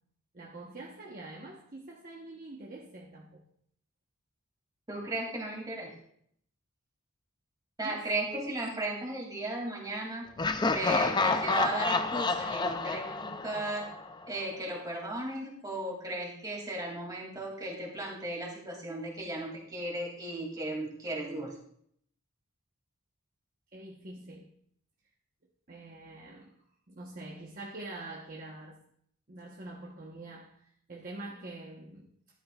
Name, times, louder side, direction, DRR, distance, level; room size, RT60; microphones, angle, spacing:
voice 1, 0.3-3.4 7.8-8.1 23.7-24.5 25.7-28.8 29.3-32.1, right 2 dB, 40° right, -2 dB, 1.1 m, -45 dB
voice 2, 4.9-5.9 7.8-10.3 10.7-13.9 14.3-21.5, right 1 dB, 15° right, -1 dB, 2.6 m, -35 dB
Laughter, 10.4-14.3, left 3 dB, 20° left, 0.4 m, -29 dB
13.5 x 11.0 x 2.4 m, 0.66 s
head